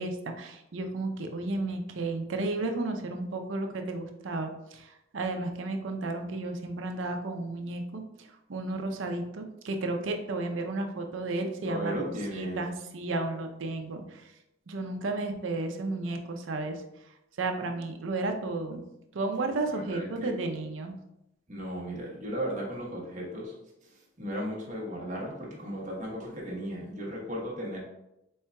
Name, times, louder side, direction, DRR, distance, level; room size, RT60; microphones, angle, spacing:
voice 1, 0.0-8.0 8.5-14.2 14.7-16.8 17.4-18.8 19.1-20.9, right 2 dB, 75° right, 4 dB, 0.5 m, -33 dB
voice 2, 11.6-12.6 19.7-20.4 21.5-23.5 23.8-23.9 24.2-27.8, equal, 40° right, -3 dB, 1.1 m, -35 dB
4.3 x 3.6 x 2.2 m, 0.87 s
head